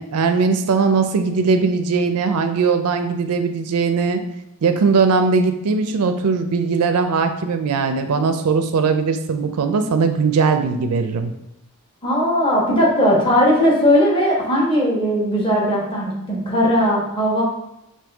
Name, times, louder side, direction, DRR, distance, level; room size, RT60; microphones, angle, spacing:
voice 1, 0.0-4.2 4.6-11.3, right 4 dB, 80° right, 7 dB, 0.4 m, -19 dB
voice 2, 12.0-17.4, equal, 25° left, -4 dB, 1.1 m, -18 dB
5.3 x 2.7 x 3.4 m, 0.87 s
head